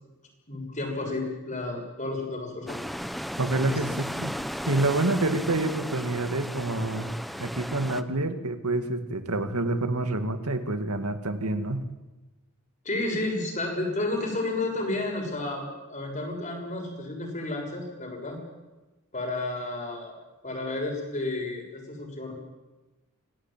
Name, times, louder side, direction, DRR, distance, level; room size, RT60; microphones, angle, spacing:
voice 1, 0.5-2.8 3.7-3.8 12.8-18.4 19.1-20.1 20.4-22.3, left 2 dB, 35° left, 1 dB, 6.7 m, -31 dB
sound 1, 2.7-8.0, equal, ahead, 0.8 m, -35 dB
voice 2, 3.4-4.4 4.7-7.1 7.4-11.9, right 2 dB, 90° right, 8 dB, 2.2 m, -27 dB
26.5 x 18.0 x 9.1 m, 1.1 s
head